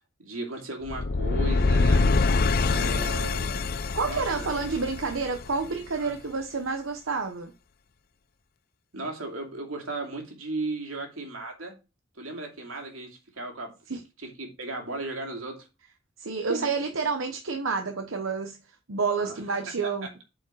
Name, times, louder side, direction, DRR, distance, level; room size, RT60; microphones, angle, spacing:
voice 1, 0.2-2.0 2.6-3.6 4.0-4.5 6.0-6.1 8.9-11.7 12.2-13.7 14.2-15.7 16.5-16.7 19.1-19.4 20.0-20.1, right 2 dB, 90° right, 2.6 m, -36 dB
sound 1, 0.8-5.9, left 3 dB, 50° left, 0.5 m, -25 dB
voice 2, 3.9-7.5 13.9-14.0 16.2-18.6 18.9-20.1, right 4 dB, 70° right, 0.9 m, -29 dB
8.3 x 5.0 x 4.7 m
head